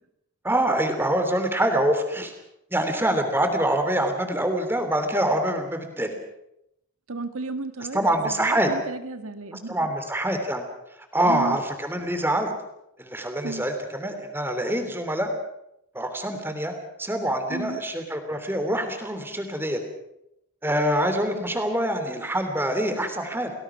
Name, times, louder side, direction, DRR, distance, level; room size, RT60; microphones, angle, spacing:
voice 1, 0.4-2.3 2.7-6.1 7.9-8.7 9.7-10.6 11.1-12.5 13.0-15.3 15.9-16.7 17.0-19.8 20.6-23.5, right 1 dB, 10° right, 7 dB, 3.1 m, -25 dB
voice 2, 7.1-9.9 11.2-11.6 13.4-13.6 17.5-17.8, right 3 dB, 75° right, 8 dB, 1.7 m, -33 dB
30.0 x 19.5 x 6.0 m, 0.82 s
head